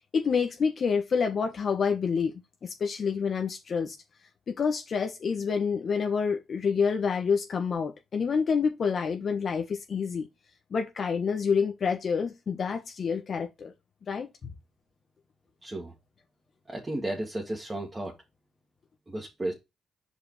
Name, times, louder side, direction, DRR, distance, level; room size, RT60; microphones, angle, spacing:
voice 1, 0.1-4.0 4.5-10.3 10.7-13.7 14.1-14.3, left 6 dB, 50° left, 1.3 m, -28 dB
voice 2, 15.6-15.9 16.7-18.2 19.1-19.5, right 1 dB, 20° right, 2.1 m, -33 dB
5.1 x 5.1 x 4.8 m
cardioid pair, 90°, 0 cm